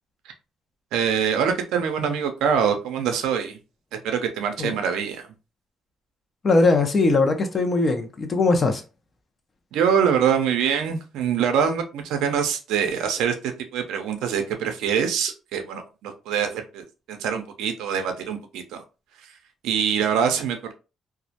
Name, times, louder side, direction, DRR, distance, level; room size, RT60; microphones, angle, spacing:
voice 1, 0.9-3.6 3.9-5.3 9.7-18.8 19.2-19.4 19.6-20.7, right 7 dB, 90° right, 0.4 m, -24 dB
voice 2, 6.4-8.8, left 3 dB, 40° left, 0.5 m, -20 dB
2.2 x 2.1 x 2.7 m
cardioid pair, 90°, 0 cm